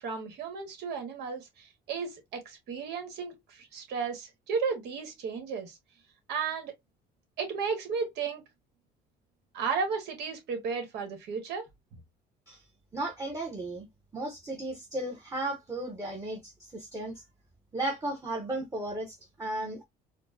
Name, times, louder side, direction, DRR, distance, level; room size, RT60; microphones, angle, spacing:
voice 1, 0.0-5.7 6.3-6.7 7.4-8.4 9.5-11.6, right 5 dB, 80° right, 1.5 m, -34 dB
voice 2, 12.9-13.9 14.1-17.2 17.7-19.8, right 2 dB, 20° right, 1.0 m, -35 dB
4.4 x 2.2 x 2.7 m
cardioid pair, 110°, 17 cm